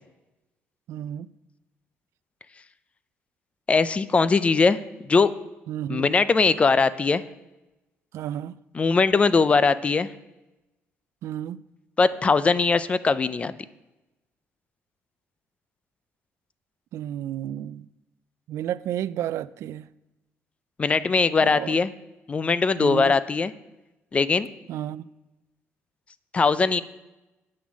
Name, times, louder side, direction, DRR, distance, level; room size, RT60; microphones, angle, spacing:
voice 1, 0.9-1.3 5.7-6.1 8.1-8.6 11.2-11.6 16.9-17.9 18.5-19.9 21.4-21.8 22.8-23.2 24.7-25.0, right 11 dB, 70° right, 0.3 m, -32 dB
voice 2, 3.7-5.3 5.9-7.2 8.7-10.1 12.0-13.5 20.8-21.9 22.3-23.5 24.1-24.5 26.3-26.8, left 4 dB, 25° left, 0.4 m, -21 dB
8.8 x 7.2 x 6.3 m
cardioid pair, 120°, 5 cm